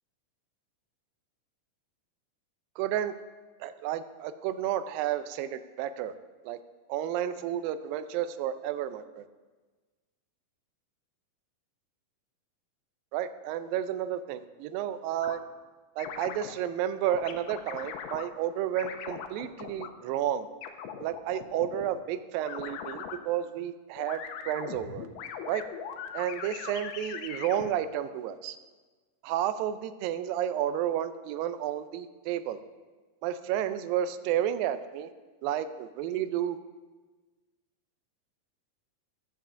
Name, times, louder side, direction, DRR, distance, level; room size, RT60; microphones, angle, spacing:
voice 1, 2.8-3.2 3.6-6.1 6.4-6.6 6.9-9.3 13.1-15.4 16.0-20.5 21.0-25.1 25.5-25.6 26.1-28.6 29.2-32.6 33.2-35.1 35.4-36.6, right 10 dB, 85° right, 12 dB, 2.3 m, -31 dB
sound 1, 15.2-15.4 16.0-16.5 17.1-18.3 18.8-19.9 20.6-21.9 22.5-23.2 24.0-27.7, left 8 dB, 80° left, 2.2 m, -40 dB
15.0 x 10.5 x 2.6 m, 1.3 s
omnidirectional pair, 4.1 m